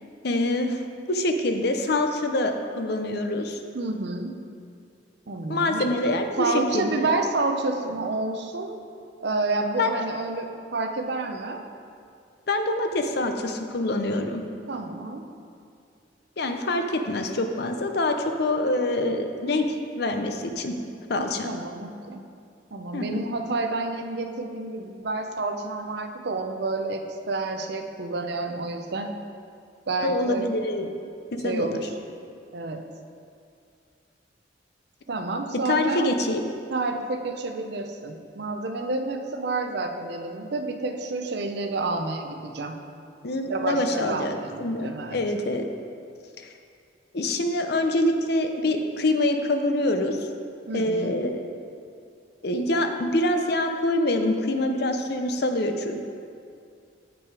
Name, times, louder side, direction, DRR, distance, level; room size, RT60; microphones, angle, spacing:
voice 1, 0.2-0.8 1.1-3.6 5.5-7.1 9.8-9.9 12.5-14.4 16.4-20.8 21.1-21.5 22.9-23.1 30.0-30.9 31.3-31.9 35.7-36.4 43.2-45.6 47.1-50.2 50.7-51.4 52.4-56.0, left 1 dB, 60° left, 5 dB, 0.7 m, -25 dB
voice 2, 3.7-4.4 5.3-5.9 6.4-8.8 9.2-11.6 14.7-15.2 21.1-22.2 22.7-29.1 29.9-30.6 31.4-31.9 32.5-32.9 35.1-36.1 36.7-42.8 43.5-45.2 50.7-51.1, right 3 dB, 65° right, 5 dB, 0.6 m, -29 dB
8.4 x 6.1 x 4.7 m, 2.4 s
head